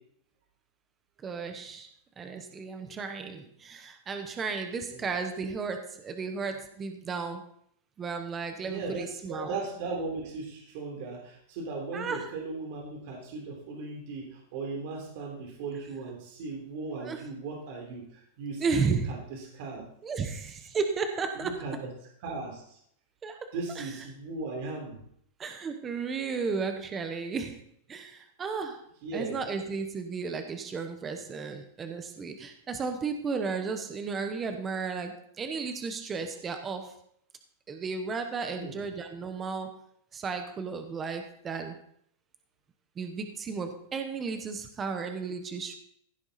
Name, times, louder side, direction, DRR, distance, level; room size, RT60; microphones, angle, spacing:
voice 1, 1.2-7.5 8.0-9.6 11.9-12.3 17.0-17.2 18.6-19.1 20.0-21.5 23.2-23.5 23.8-24.0 25.4-27.6 27.9-28.9 29.1-37.0 37.7-39.8 40.1-41.8 43.0-45.7, right 5 dB, 15° right, 7 dB, 0.9 m, -34 dB
voice 2, 8.6-19.8 21.3-21.9 22.2-22.8 23.5-25.0 29.0-29.3 38.5-38.8, right 3 dB, 45° right, 0 dB, 3.3 m, -37 dB
15.5 x 7.1 x 4.1 m, 0.67 s
supercardioid pair, 175°, 0 cm